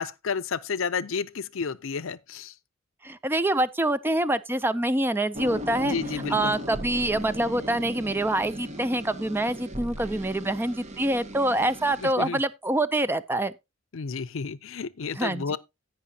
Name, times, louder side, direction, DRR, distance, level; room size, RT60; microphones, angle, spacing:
voice 1, 0.0-2.5 5.8-6.5 12.0-12.4 13.9-15.6, left 5 dB, 70° left, 0.6 m, -31 dB
voice 2, 3.0-6.0 6.3-13.5 15.2-15.6, right 1 dB, 10° right, 0.4 m, -26 dB
sound 1, 5.3-12.1, equal, 35° right, 1.2 m, -37 dB
17.0 x 5.8 x 2.8 m
head